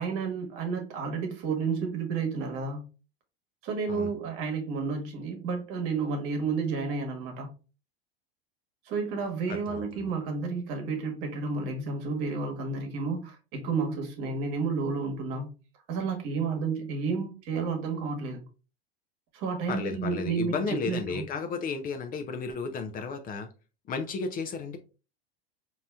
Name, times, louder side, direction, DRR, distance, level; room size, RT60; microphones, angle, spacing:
voice 1, 0.0-2.9 3.6-7.5 8.9-15.5 15.9-18.4 19.3-21.2, right 4 dB, 50° right, 1.2 m, -31 dB
voice 2, 9.7-10.1 19.7-23.5 23.9-24.8, left 4 dB, 30° left, 0.5 m, -33 dB
4.1 x 2.8 x 2.3 m
hypercardioid pair, 100°, 30 cm